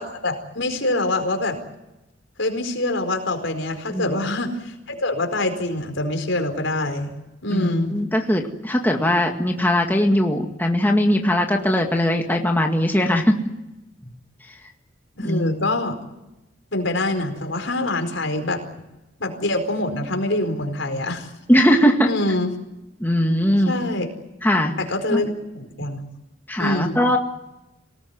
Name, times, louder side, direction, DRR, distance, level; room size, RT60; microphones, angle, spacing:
voice 1, 0.0-1.6 2.4-7.1 7.4-8.0 15.2-16.0 16.7-18.6 19.2-21.3 22.1-22.5 23.6-24.1 24.8-26.0 26.6-27.0, left 2 dB, 75° left, 6 dB, 4.6 m, -25 dB
voice 2, 7.5-13.4 15.2-15.5 21.5-22.1 23.0-23.8 24.4-24.8 25.1-25.2 26.5-27.2, equal, 10° left, 2 dB, 2.0 m, -20 dB
26.5 x 19.0 x 9.6 m, 0.96 s
head